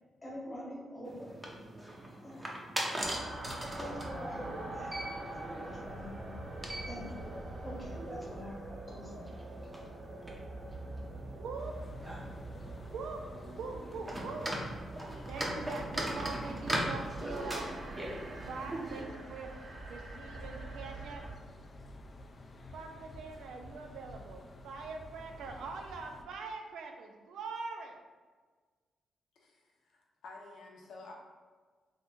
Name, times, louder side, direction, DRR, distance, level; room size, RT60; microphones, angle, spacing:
voice 1, 0.2-1.4 2.2-2.5 3.7-5.0 5.2-9.4, equal, 20° left, -4 dB, 1.1 m, -45 dB
sound 1, 1.0-19.0, right 1 dB, 15° right, 0.5 m, -41 dB
sound 2, 3.0-21.3, right 2 dB, 45° right, 0.8 m, -45 dB
voice 2, 11.4-11.8 12.9-13.2 13.6-14.5 15.3-17.7 18.4-19.5 19.9-21.2 22.7-28.0, right 4 dB, 90° right, 3 dB, 0.4 m, -43 dB
sound 3, 11.6-26.3, left 1 dB, 40° left, 0.3 m, -52 dB
voice 3, 29.4-31.1, left 3 dB, 85° left, -1 dB, 0.6 m, -51 dB
2.8 x 2.5 x 3.5 m, 1.4 s
cardioid pair, 105°, 0 cm